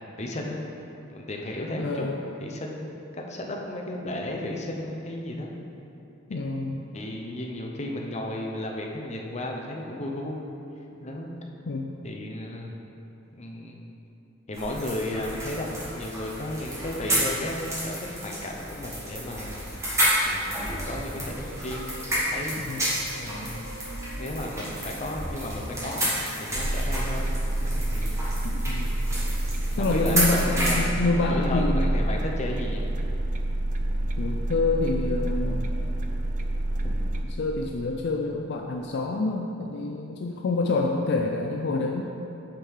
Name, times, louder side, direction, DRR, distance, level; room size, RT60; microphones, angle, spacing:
voice 1, 0.2-0.6 1.1-2.1 2.4-2.9 3.3-5.5 6.9-10.4 11.0-11.3 12.0-12.7 13.3-13.8 14.5-19.7 20.2-22.6 23.1-23.7 24.2-26.1 26.4-28.2 29.8-32.8 36.8-36.9, left 1 dB, 35° left, 0 dB, 0.8 m, -34 dB
voice 2, 1.8-2.2 6.3-6.9 11.7-12.0 22.6-22.9 28.4-29.0 29.8-32.0 34.2-35.7 37.4-42.0, left 3 dB, 60° left, 1 dB, 0.5 m, -27 dB
sound 1, 14.5-30.8, equal, 15° right, 1.7 m, -31 dB
sound 2, 20.8-26.7, right 2 dB, 85° right, 1.6 m, -45 dB
sound 3, 26.5-37.2, right 1 dB, 40° right, 0.5 m, -28 dB
8.7 x 6.4 x 3.7 m, 2.8 s
head